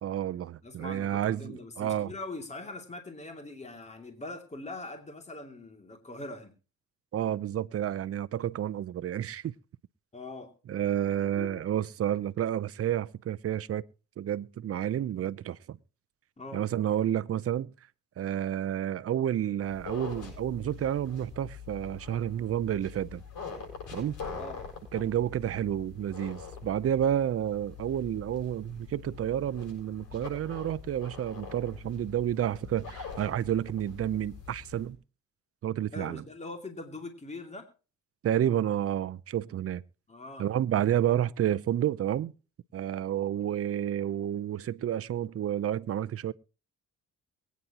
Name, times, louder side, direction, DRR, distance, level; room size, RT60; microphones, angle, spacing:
voice 1, 0.0-2.1 7.1-9.5 10.7-13.8 14.2-15.8 16.5-17.7 18.2-23.2 23.9-24.2 24.9-35.0 35.6-36.2 38.2-39.8 40.4-42.3 42.7-46.3, right 10 dB, 50° right, 0.7 m, -30 dB
voice 2, 0.6-6.5 10.1-10.5 11.4-11.6 16.4-16.6 24.3-24.6 35.9-37.7 40.1-40.5, left 2 dB, 20° left, 2.6 m, -42 dB
sound 1, 19.6-34.9, left 5 dB, 75° left, 7.5 m, -44 dB
23.0 x 9.5 x 2.9 m
cardioid pair, 90°, 30 cm